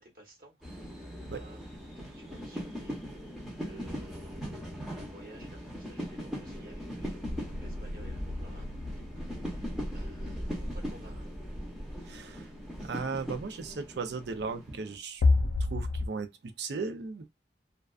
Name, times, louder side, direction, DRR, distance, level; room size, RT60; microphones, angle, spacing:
voice 1, 0.0-3.0 3.5-7.2 7.5-8.7 9.2-11.3, right 1 dB, 55° right, 1.1 m, -55 dB
sound 1, 0.6-15.0, equal, 5° right, 0.7 m, -40 dB
sound 2, 7.2-12.7 15.2-16.1, left 3 dB, 85° left, 0.4 m, -32 dB
voice 2, 12.0-12.5 12.8-15.2 15.7-17.3, right 4 dB, 70° right, 0.5 m, -36 dB
2.3 x 2.3 x 2.3 m
head